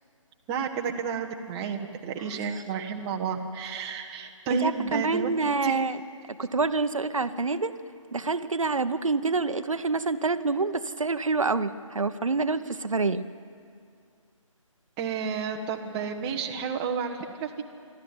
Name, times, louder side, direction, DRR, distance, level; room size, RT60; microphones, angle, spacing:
voice 1, 0.5-5.8 15.0-17.6, right 6 dB, 15° right, 2 dB, 1.0 m, -31 dB
voice 2, 4.5-6.0 6.4-7.8 8.1-13.2, right 3 dB, 70° right, 11 dB, 1.0 m, -27 dB
25.0 x 13.0 x 9.7 m, 2.3 s
figure-of-eight pair, 150°, 17 cm